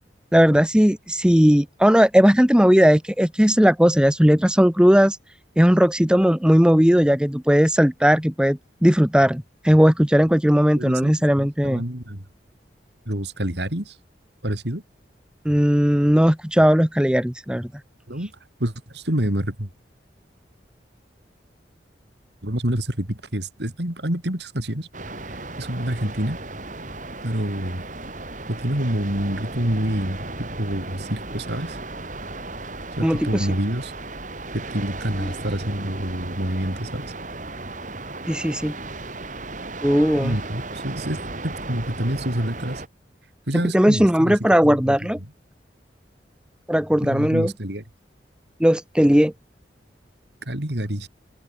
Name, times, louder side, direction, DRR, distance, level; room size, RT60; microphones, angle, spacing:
voice 1, 0.3-5.2 5.6-11.8 15.4-17.7 33.0-33.5 38.3-38.7 39.8-40.3 43.7-45.2 46.7-47.5 48.6-49.3, equal, 5° right, 1.0 m, -17 dB
voice 2, 10.8-12.2 13.1-14.0 14.4-14.8 18.1-18.3 18.6-19.7 22.4-24.9 25.3-26.4 27.2-27.8 28.5-31.8 33.0-33.9 34.5-37.1 40.2-42.8 43.5-45.0 47.0-47.8 50.5-51.1, right 1 dB, 70° right, 4.4 m, -27 dB
sound 1, 24.9-42.9, right 2 dB, 45° right, 5.3 m, -35 dB
open air
head